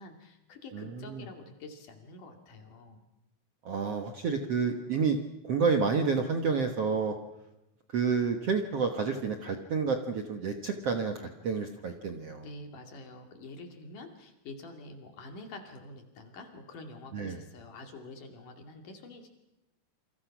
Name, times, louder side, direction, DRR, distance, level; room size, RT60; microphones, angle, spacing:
voice 1, 0.0-3.0 12.4-19.3, left 2 dB, 60° left, 4 dB, 3.9 m, -47 dB
voice 2, 0.7-1.2 3.6-5.2 5.4-7.2 7.9-12.5 17.1-17.4, right 5 dB, 55° right, 5 dB, 1.8 m, -29 dB
28.0 x 26.0 x 6.0 m, 0.98 s
omnidirectional pair, 4.3 m